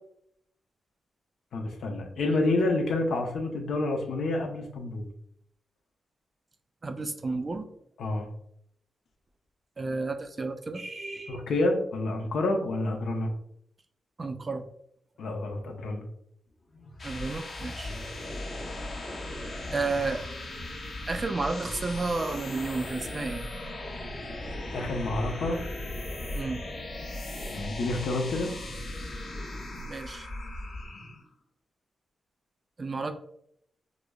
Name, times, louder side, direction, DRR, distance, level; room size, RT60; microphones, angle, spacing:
voice 1, 1.5-5.1 8.0-8.3 11.3-13.3 15.2-16.0 17.8-18.0 24.7-25.6 27.5-28.5, left 2 dB, 80° left, 3 dB, 0.7 m, -29 dB
voice 2, 6.8-7.7 9.8-11.4 14.2-14.6 17.0-17.9 19.7-20.2 21.1-23.5 26.3-26.6 29.9-30.3 32.8-33.1, right 3 dB, 35° right, 7 dB, 0.4 m, -32 dB
sound 1, 16.7-31.3, left 1 dB, 45° left, 0.9 m, -37 dB
4.9 x 2.0 x 2.3 m, 0.70 s
wide cardioid pair, 110°, 0 cm